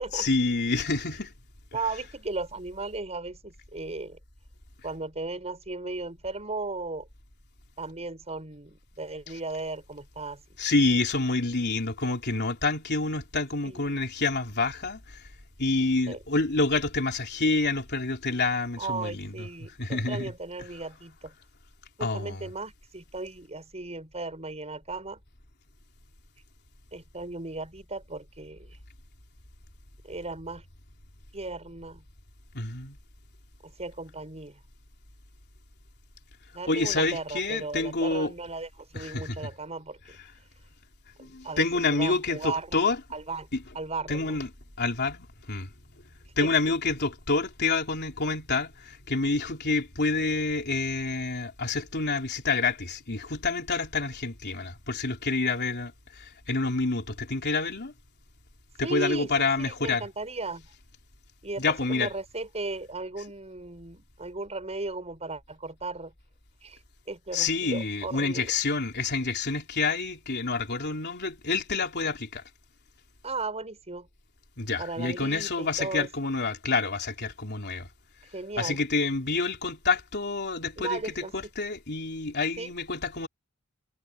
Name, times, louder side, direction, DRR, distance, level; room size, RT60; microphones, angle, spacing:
voice 1, 0.1-1.3 10.6-15.0 15.6-19.3 19.8-20.3 22.0-22.5 32.5-33.0 36.7-38.3 38.9-39.4 41.2-43.0 43.5-43.6 44.1-44.5 44.8-45.7 46.4-57.9 58.8-60.1 61.6-62.1 67.3-72.4 74.6-77.9 78.6-81.0 81.3-83.3, left 3 dB, 50° left, 3.4 m, -28 dB
voice 2, 1.7-4.2 4.8-7.1 7.8-10.4 13.6-14.0 16.1-16.2 18.8-21.3 22.0-25.2 26.9-28.8 30.0-30.6 31.3-32.0 33.6-34.6 36.5-40.2 41.2-41.7 41.9-42.8 43.1-43.5 43.7-44.4 46.4-46.5 58.8-60.7 61.4-66.1 66.6-66.8 67.1-68.5 73.2-74.1 74.8-76.1 78.3-78.8 80.8-81.3 82.6-82.7, right 3 dB, 30° right, 6.1 m, -36 dB
head